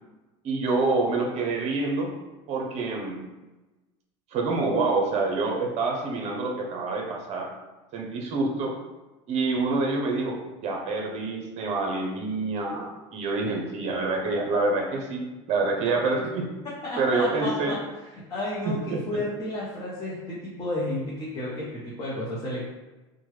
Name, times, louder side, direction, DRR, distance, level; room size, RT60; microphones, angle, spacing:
voice 1, 0.4-2.1 2.5-3.2 4.3-7.5 7.9-8.7 9.3-15.2 15.5-16.5 17.0-17.8 18.6-19.0, right 3 dB, 45° right, 1 dB, 0.7 m, -27 dB
voice 2, 16.8-17.8 18.3-22.6, left 1 dB, 25° left, -7 dB, 0.8 m, -32 dB
2.9 x 2.2 x 3.2 m, 1.1 s
supercardioid pair, 105°, 15 cm